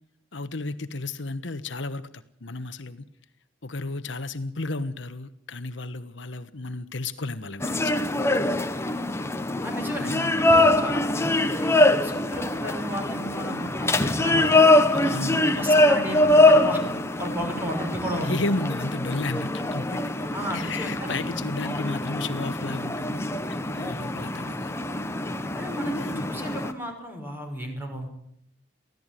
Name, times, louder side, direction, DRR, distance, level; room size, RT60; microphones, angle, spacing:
voice 1, 0.3-3.0 3.6-7.9 9.9-10.3 15.0-15.5 18.2-20.2 20.5-24.8 25.8-26.2, left 2 dB, 65° left, 11 dB, 1.2 m, -33 dB
sound 1, 7.6-26.7, left 1 dB, 15° left, 1.3 m, -23 dB
voice 2, 9.6-10.1 10.4-14.6 14.9-18.4 20.3-21.2 21.7-21.8 25.6-28.1, equal, 10° right, 3 dB, 5.8 m, -34 dB
24.0 x 16.5 x 9.1 m, 0.72 s
head